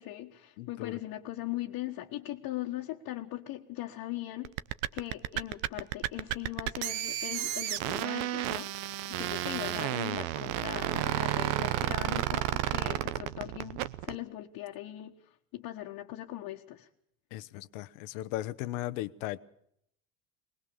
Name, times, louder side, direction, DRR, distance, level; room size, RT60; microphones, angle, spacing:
voice 1, 0.0-4.5 4.9-8.8 9.1-16.9, left 15 dB, 65° left, 1.5 m, -40 dB
voice 2, 0.6-1.0 17.3-19.4, left 15 dB, 80° left, 1.0 m, -37 dB
sound 1, 4.4-14.2, right 14 dB, 85° right, 0.9 m, -32 dB
21.0 x 20.0 x 7.1 m
supercardioid pair, 100°, 39 cm